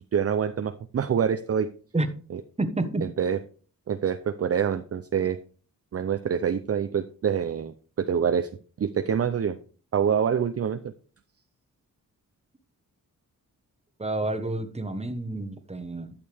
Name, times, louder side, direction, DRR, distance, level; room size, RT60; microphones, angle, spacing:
voice 1, 0.0-1.7 2.3-2.4 3.0-3.4 3.9-5.4 5.9-8.5 8.8-9.6 9.9-10.8, right 7 dB, 45° right, 9 dB, 0.5 m, -26 dB
voice 2, 2.6-3.1 14.0-16.1, right 2 dB, 20° right, 8 dB, 1.2 m, -29 dB
11.5 x 6.7 x 3.4 m, 0.40 s
wide cardioid pair, 90°, 35 cm